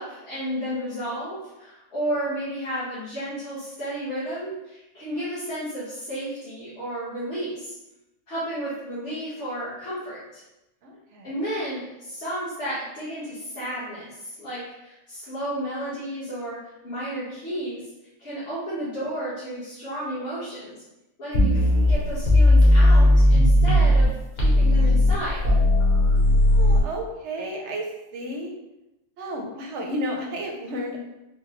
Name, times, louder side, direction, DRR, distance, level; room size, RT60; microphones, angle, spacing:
voice 1, 0.0-7.7 8.3-10.4 11.2-17.8 18.2-20.8 21.2-25.4, equal, 45° left, -13 dB, 1.4 m, -32 dB
voice 2, 10.8-11.5 26.4-27.9 28.1-28.5 29.2-31.0, equal, 60° right, 0 dB, 0.8 m, -32 dB
sound 1, 21.3-24.1 24.4-26.8, left 1 dB, 70° left, 1.3 m, -17 dB
4.4 x 2.1 x 3.0 m, 0.95 s
omnidirectional pair, 1.6 m